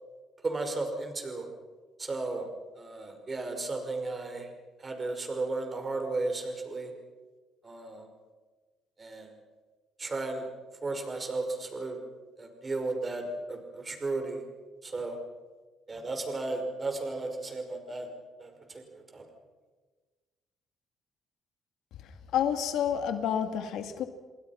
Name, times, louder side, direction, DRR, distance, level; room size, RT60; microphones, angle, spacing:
voice 1, 0.4-1.5 2.0-2.5 2.7-4.5 4.8-6.9 7.6-8.1 9.0-9.3 10.0-10.5 10.8-12.0 12.4-14.4 14.8-15.2 15.9-18.1 18.4-19.2, right 3 dB, 30° right, 5 dB, 5.6 m, -34 dB
voice 2, 22.0-24.0, left 9 dB, 80° left, 8 dB, 2.3 m, -29 dB
29.0 x 20.5 x 6.0 m, 1.3 s
cardioid pair, 85°, 0 cm